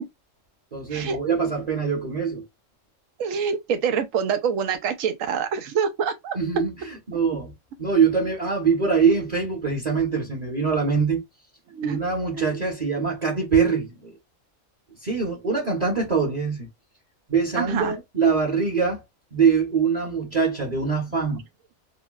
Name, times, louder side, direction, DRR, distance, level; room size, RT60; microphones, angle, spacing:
voice 1, 0.7-2.4 6.3-7.5 7.8-11.2 11.8-14.1 15.0-16.7 17.3-19.0 19.3-21.4, right 5 dB, 35° right, 0.9 m, -23 dB
voice 2, 3.2-6.4 11.7-12.0 12.3-12.5 17.6-18.0, right 7 dB, 90° right, 1.0 m, -26 dB
3.7 x 2.2 x 2.2 m
omnidirectional pair, 1.3 m